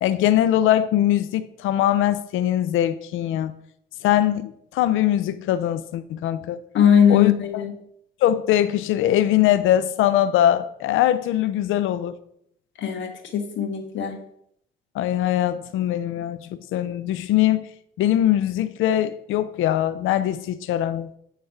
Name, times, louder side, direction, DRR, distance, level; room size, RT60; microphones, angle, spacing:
voice 1, 0.0-3.5 4.0-6.6 7.1-7.3 8.2-12.1 14.9-17.7 18.0-21.1, left 12 dB, 85° left, 0.5 m, -21 dB
voice 2, 6.7-7.7 12.8-14.2, left 8 dB, 70° left, 1.4 m, -20 dB
8.9 x 3.3 x 5.8 m
cardioid pair, 90°, 20 cm